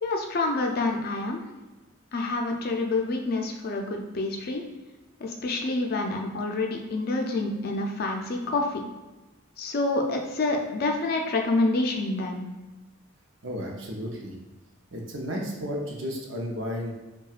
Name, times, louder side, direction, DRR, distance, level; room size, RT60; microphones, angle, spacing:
voice 1, 0.0-1.4 2.1-4.6 5.2-8.8 9.6-12.5, left 2 dB, 50° left, 2 dB, 0.5 m, -27 dB
voice 2, 13.4-14.3 14.9-16.9, equal, 65° right, 0 dB, 0.7 m, -33 dB
5.6 x 2.3 x 2.4 m, 1.1 s
head